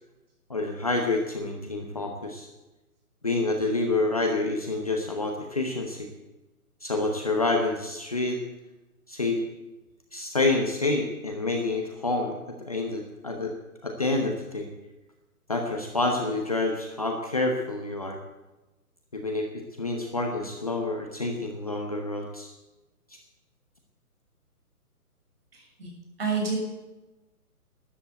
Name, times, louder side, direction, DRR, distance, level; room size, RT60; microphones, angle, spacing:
voice 1, 0.5-2.5 3.2-6.1 6.8-8.4 9.1-9.4 10.1-12.3 12.7-13.5 13.8-14.7 15.5-18.2 19.1-22.5, left 2 dB, 25° left, 2 dB, 1.0 m, -28 dB
voice 2, 25.5-25.9 26.2-26.6, right 5 dB, 40° right, 0 dB, 6.3 m, -28 dB
13.0 x 10.5 x 8.2 m, 1.1 s
hypercardioid pair, 180°, 45 cm